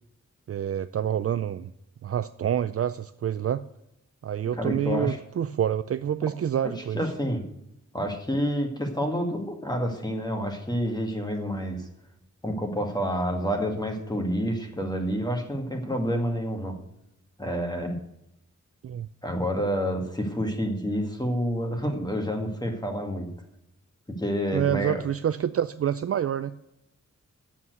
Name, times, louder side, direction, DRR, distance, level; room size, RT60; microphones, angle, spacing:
voice 1, 0.5-1.7 2.0-3.6 4.2-7.0 18.8-19.1 24.5-26.5, right 9 dB, 50° right, 12 dB, 0.4 m, -27 dB
voice 2, 4.5-5.2 6.6-7.4 7.9-11.9 12.4-16.8 17.4-18.0 19.2-23.3 24.1-25.0, equal, 15° left, 3 dB, 2.0 m, -28 dB
8.5 x 7.3 x 8.0 m, 0.82 s
wide cardioid pair, 125°, 29 cm